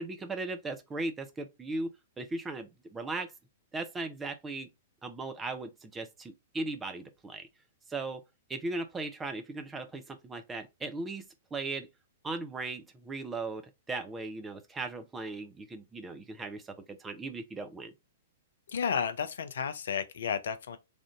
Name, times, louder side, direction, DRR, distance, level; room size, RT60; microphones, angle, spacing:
voice 1, 0.0-1.9 2.2-3.3 3.7-4.7 5.0-7.5 7.9-8.2 8.5-11.2 11.5-11.9 12.2-13.6 13.9-17.9, right 3 dB, 15° right, 0.6 m, -37 dB
voice 2, 18.7-20.8, left 7 dB, 60° left, 0.5 m, -32 dB
3.4 x 2.5 x 3.8 m
figure-of-eight pair, 105°, 0 cm